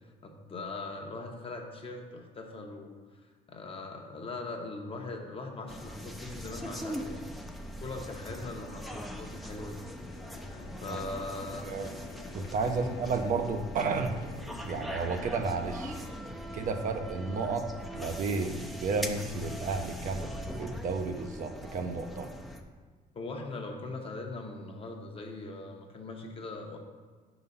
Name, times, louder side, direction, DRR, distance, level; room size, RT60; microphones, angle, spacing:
voice 1, 0.2-3.2 3.5-7.2 7.8-9.9 10.8-11.7 12.6-13.0 23.1-26.8, left 3 dB, 35° left, 2 dB, 0.9 m, -40 dB
sound 1, 5.7-22.6, equal, ahead, 0.5 m, -41 dB
sound 2, 9.9-16.1, left 4 dB, 70° left, 1.0 m, -48 dB
voice 2, 12.3-14.2 14.6-16.0 16.5-17.7 17.9-20.3 20.6-22.3, right 4 dB, 50° right, 6 dB, 0.6 m, -32 dB
5.4 x 4.0 x 5.4 m, 1.5 s
cardioid pair, 110°, 17 cm